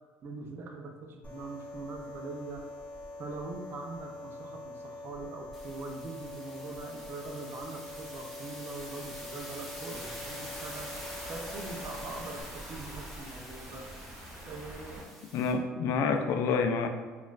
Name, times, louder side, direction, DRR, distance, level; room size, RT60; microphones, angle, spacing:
voice 1, 0.2-2.6 3.2-10.9 11.3-13.9 14.4-15.1, right 3 dB, 50° right, 3 dB, 0.5 m, -42 dB
sound 1, 1.2-12.4, left 2 dB, 30° left, 0.9 m, -44 dB
sound 2, 5.5-15.5, equal, ahead, 0.8 m, -46 dB
sound 3, 9.9-15.0, right 1 dB, 30° right, 0.9 m, -46 dB
voice 2, 15.3-16.9, left 5 dB, 70° left, 6 dB, 0.3 m, -28 dB
4.2 x 2.4 x 2.3 m, 1.4 s
supercardioid pair, 90°, 5 cm